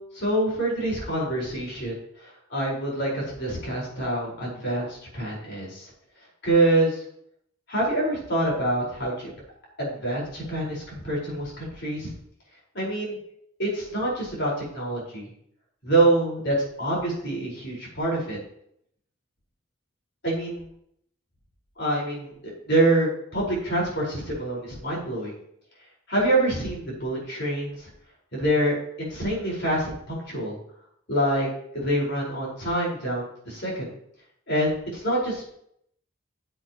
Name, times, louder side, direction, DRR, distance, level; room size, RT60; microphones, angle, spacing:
voice 1, 0.0-1.9 2.2-5.9 6.4-7.0 7.7-9.3 9.8-12.1 12.7-13.2 13.6-15.3 15.8-18.4 20.2-20.6 21.8-25.3 26.1-27.9 28.3-30.6 31.1-31.5 31.7-33.9 34.5-35.5, right 1 dB, 55° left, -4 dB, 4.7 m, -26 dB
15.5 x 7.9 x 3.0 m, 0.70 s
head